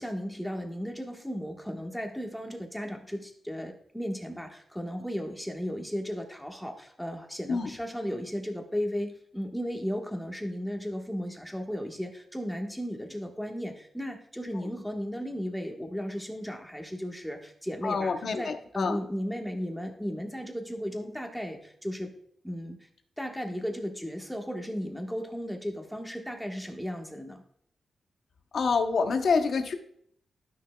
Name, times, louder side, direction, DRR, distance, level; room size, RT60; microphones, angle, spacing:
voice 1, 0.0-22.1 22.4-22.8 23.2-27.4, equal, ahead, 2 dB, 1.3 m, -35 dB
voice 2, 17.8-19.0 28.5-29.8, left 4 dB, 65° left, 7 dB, 0.8 m, -27 dB
12.5 x 6.1 x 2.2 m, 0.64 s
wide cardioid pair, 105°, 0 cm